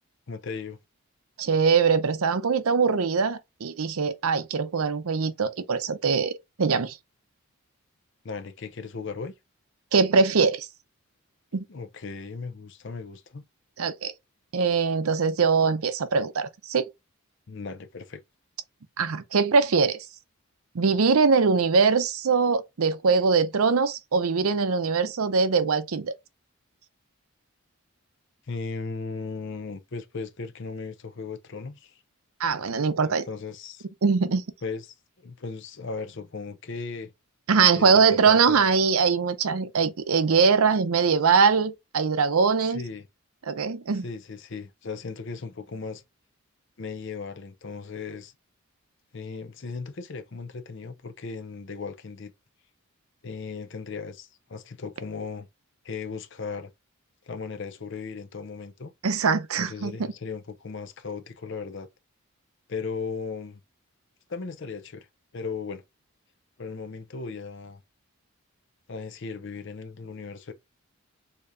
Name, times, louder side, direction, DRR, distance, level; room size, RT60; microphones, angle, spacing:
voice 1, 0.3-0.8 8.2-9.3 11.7-13.4 17.5-18.2 28.5-32.0 33.0-33.9 34.6-37.1 37.7-38.6 42.6-43.0 44.0-46.0 46.8-48.3 49.1-52.3 53.2-55.5 55.8-56.7 57.3-58.9 59.6-61.9 62.7-63.6 64.3-65.1 65.3-65.8 66.6-67.8 68.9-70.5, left 4 dB, 55° left, 0.6 m, -37 dB
voice 2, 1.4-7.0 9.9-10.7 11.5-11.6 13.8-14.1 14.5-16.9 19.0-20.1 20.7-26.1 32.4-33.3 34.0-34.4 37.5-42.8 43.5-44.1 59.0-60.0, right 5 dB, 75° right, 0.6 m, -22 dB
6.6 x 2.9 x 2.5 m
head